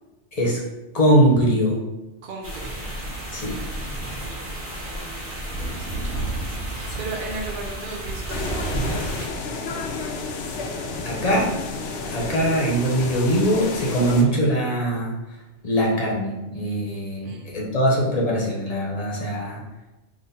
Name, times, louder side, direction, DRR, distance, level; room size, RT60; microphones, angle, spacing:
voice 1, 0.9-1.8 3.3-3.6 11.0-11.5 12.1-15.1 15.6-19.6, right 1 dB, 35° left, -3 dB, 1.0 m, -21 dB
voice 2, 2.2-2.8 4.1-6.3 6.6-9.6 17.2-17.8, right 3 dB, 55° right, 1 dB, 0.7 m, -38 dB
sound 1, 2.4-9.3, right 1 dB, 10° right, 1.3 m, -31 dB
sound 2, 8.3-14.2, left 3 dB, 80° left, 1.0 m, -31 dB
3.9 x 3.1 x 4.1 m, 1.1 s
omnidirectional pair, 1.2 m